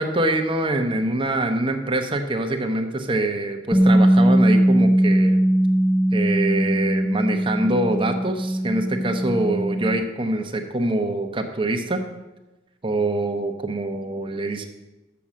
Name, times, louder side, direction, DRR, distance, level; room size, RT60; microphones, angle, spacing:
voice 1, 0.0-5.4 6.1-12.0 12.8-14.7, right 2 dB, 25° right, 5 dB, 0.8 m, -24 dB
Bass guitar, 3.7-10.0, right 1 dB, ahead, 0.6 m, -19 dB
7.0 x 6.2 x 7.3 m, 1.1 s
head